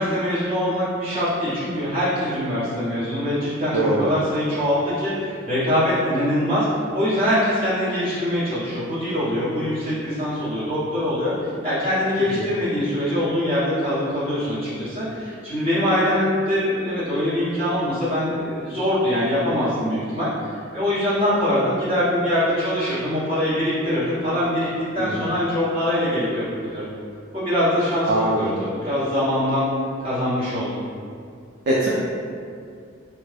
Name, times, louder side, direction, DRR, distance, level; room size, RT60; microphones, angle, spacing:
voice 1, 0.0-6.7 6.9-20.3 20.7-24.7 24.9-26.8 27.3-28.1 28.4-29.7 30.0-30.8, left 1 dB, 30° right, -13 dB, 1.3 m, -23 dB
voice 2, 3.7-4.1 12.3-12.5 25.0-25.2 28.1-28.6 31.7-31.9, right 1 dB, 55° right, -7 dB, 0.4 m, -22 dB
3.3 x 2.2 x 3.3 m, 2.3 s
head